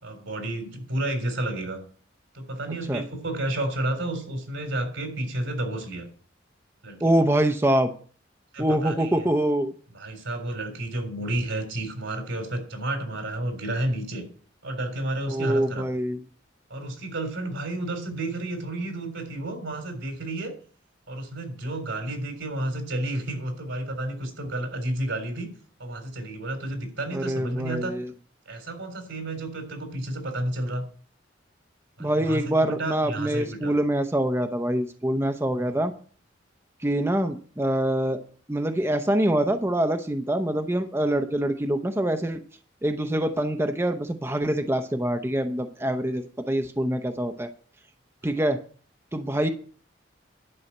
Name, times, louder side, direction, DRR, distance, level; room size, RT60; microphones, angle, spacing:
voice 1, 0.0-1.8 2.3-6.1 6.8-7.0 8.5-9.2 9.9-14.2 14.6-15.9 16.7-20.5 21.1-25.5 25.8-28.0 28.5-30.8 32.0-33.8, right 1 dB, 80° right, 5 dB, 3.7 m, -31 dB
voice 2, 7.0-7.9 8.6-9.7 15.3-16.2 27.1-28.1 32.0-35.9 36.8-38.2 38.5-42.4 42.8-47.5 48.2-48.6 49.1-49.5, right 1 dB, 15° right, 7 dB, 0.7 m, -25 dB
11.0 x 5.5 x 8.5 m, 0.44 s
head